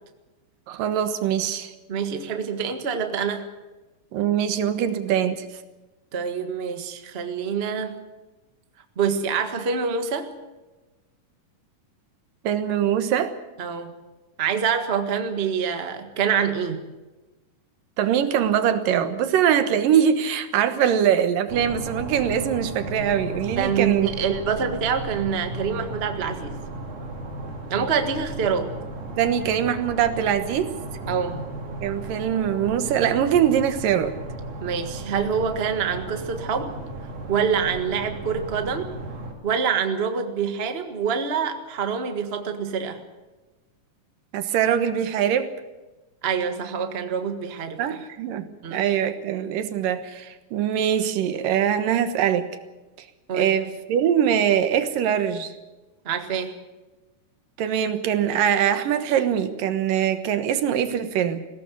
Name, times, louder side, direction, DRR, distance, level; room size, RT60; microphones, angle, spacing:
voice 1, 0.7-1.7 4.1-5.5 12.4-13.3 18.0-24.1 29.2-30.7 31.8-34.2 44.3-45.5 47.8-48.4 48.7-52.5 53.3-55.5 57.6-61.4, right 9 dB, 85° right, 10 dB, 3.0 m, -22 dB
voice 2, 1.9-3.5 6.1-8.0 9.0-10.3 13.6-13.9 14.4-16.9 23.6-26.6 27.7-28.7 31.1-31.4 34.6-36.8 37.3-38.9 39.4-43.0 46.2-48.0 48.6-48.8 53.3-53.5 56.0-56.5, right 6 dB, 35° right, 6 dB, 1.0 m, -26 dB
sound 1, 21.5-39.3, right 2 dB, 65° right, 4.6 m, -35 dB
20.5 x 17.0 x 8.3 m, 1.1 s
omnidirectional pair, 3.8 m